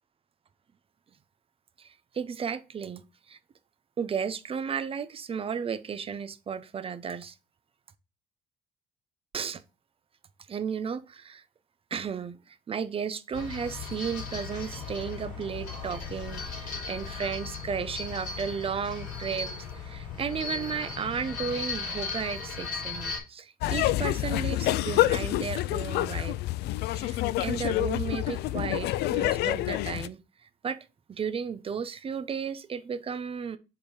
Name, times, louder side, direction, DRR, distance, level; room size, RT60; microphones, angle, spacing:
voice 1, 1.8-3.4 4.0-7.3 9.3-9.6 10.5-11.4 11.9-19.5 19.7-26.4 26.9-30.2 30.6-30.8 31.1-33.6, right 6 dB, 35° right, 0.7 m, -34 dB
sound 1, 13.3-23.2, left 5 dB, 55° left, 4.1 m, -37 dB
sound 2, 23.6-30.1, left 15 dB, 75° left, 0.4 m, -27 dB
7.1 x 3.7 x 4.9 m
cardioid pair, 110°, 17 cm